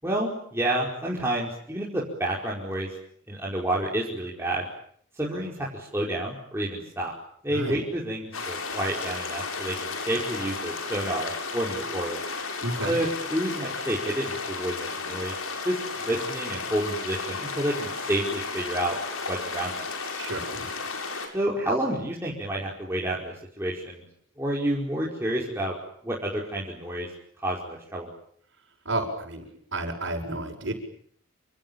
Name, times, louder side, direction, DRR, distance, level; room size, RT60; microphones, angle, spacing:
voice 1, 0.0-2.9 3.3-4.7 5.2-7.1 7.4-12.2 12.8-15.3 15.6-15.8 16.0-18.9 19.3-19.9 21.3-24.0 24.4-25.7 26.0-27.1 27.4-28.1, right 1 dB, 10° right, -4 dB, 5.1 m, -29 dB
sound 1, 8.3-21.3, left 4 dB, 85° left, 6.9 m, -33 dB
voice 2, 12.6-12.9 20.2-20.6 28.8-29.4 29.7-30.7, right 2 dB, 60° right, -5 dB, 6.8 m, -31 dB
28.5 x 27.5 x 7.4 m, 0.65 s
head